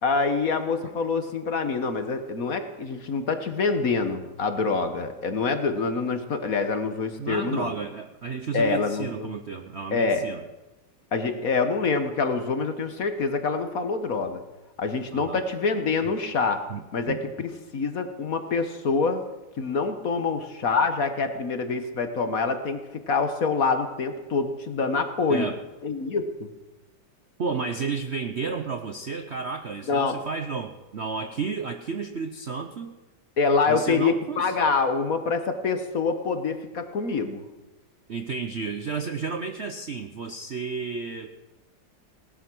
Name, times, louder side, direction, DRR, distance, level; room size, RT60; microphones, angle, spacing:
voice 1, 0.0-7.7 8.5-9.3 9.9-10.2 11.1-14.4 14.8-16.6 16.9-19.2 19.6-22.8 23.1-25.5 25.8-26.5 29.9-30.2 33.4-37.4, left 4 dB, 50° left, 8 dB, 1.5 m, -26 dB
voice 2, 7.2-10.4 15.1-15.4 16.0-16.1 16.7-17.2 25.3-25.6 27.4-32.9 33.7-34.5 38.1-41.3, right 5 dB, 55° right, 6 dB, 0.8 m, -32 dB
18.5 x 12.0 x 6.2 m, 1.1 s
omnidirectional pair, 2.1 m